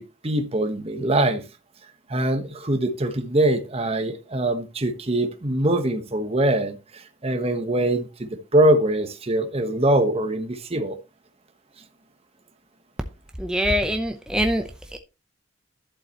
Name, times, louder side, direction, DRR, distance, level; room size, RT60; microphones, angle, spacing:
voice 1, 0.0-1.4 2.1-11.0, right 1 dB, 30° right, 1.2 m, -23 dB
voice 2, 13.4-15.0, equal, 5° right, 0.7 m, -24 dB
11.5 x 7.6 x 3.0 m
head